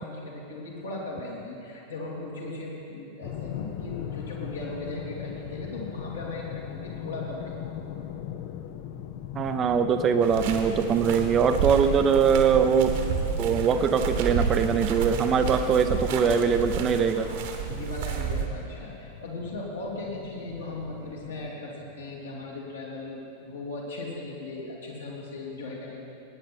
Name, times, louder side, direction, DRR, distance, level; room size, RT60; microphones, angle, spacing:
voice 1, 0.0-7.6 17.2-26.0, left 2 dB, 70° left, -4 dB, 2.7 m, -37 dB
sound 1, 3.2-21.5, left 10 dB, 45° left, 0.6 m, -40 dB
voice 2, 9.3-12.9 13.4-17.3, right 6 dB, 30° right, 8 dB, 0.6 m, -22 dB
sound 2, 10.2-18.5, right 7 dB, 50° right, 1.2 m, -31 dB
18.0 x 9.6 x 4.2 m, 2.7 s
figure-of-eight pair, 90°, 0 cm